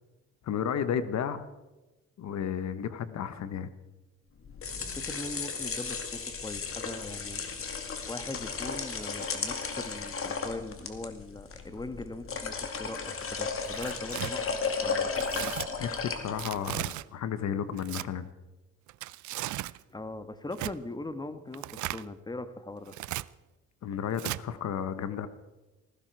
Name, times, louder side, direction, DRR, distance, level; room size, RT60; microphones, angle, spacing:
voice 1, 0.4-1.5 2.2-3.7 15.8-18.3 23.8-25.3, left 8 dB, 65° left, 12 dB, 1.1 m, -33 dB
sound 1, 4.4-16.8, left 5 dB, 45° left, 2.3 m, -35 dB
voice 2, 4.8-7.4 8.1-14.5 14.8-15.5 19.9-22.9, left 2 dB, 15° left, 11 dB, 1.3 m, -40 dB
Tearing, 13.6-14.3 15.2-15.7 16.4-17.0 17.7-18.1 18.9-19.8 20.5-20.7 21.5-22.0 22.9-23.2 24.2-24.4, right 16 dB, 75° right, 0.5 m, -36 dB
18.0 x 16.0 x 4.6 m, 1.1 s
cardioid pair, 90°, 30 cm